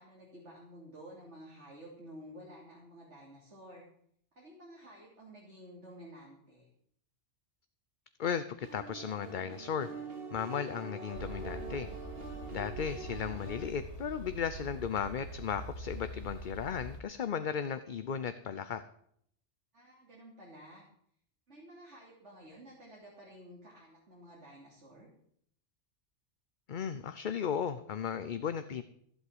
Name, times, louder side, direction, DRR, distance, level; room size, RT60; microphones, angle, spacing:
voice 1, 0.0-3.9 4.4-6.7 19.7-20.9 21.5-25.1, equal, 80° right, -4 dB, 3.5 m, -52 dB
voice 2, 8.2-9.9 10.3-11.9 12.5-18.8 26.7-28.8, left 7 dB, 50° left, 11 dB, 0.8 m, -35 dB
sound 1, 8.6-13.7, right 3 dB, 55° right, 1.9 m, -45 dB
sound 2, 11.1-17.0, right 1 dB, 75° left, 2.9 m, -44 dB
15.0 x 8.2 x 7.9 m, 0.68 s
omnidirectional pair, 1.2 m